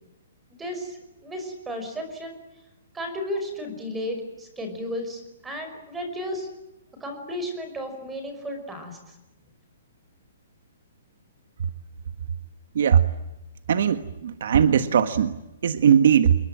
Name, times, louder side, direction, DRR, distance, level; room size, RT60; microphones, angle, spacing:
voice 1, 0.5-2.4 2.9-6.5 7.0-9.0, equal, 5° right, 6 dB, 5.4 m, -33 dB
voice 2, 12.7-13.1 13.7-15.4 15.6-16.3, right 8 dB, 60° right, 10 dB, 1.5 m, -19 dB
28.5 x 21.5 x 8.9 m, 0.95 s
hypercardioid pair, 170°, 0 cm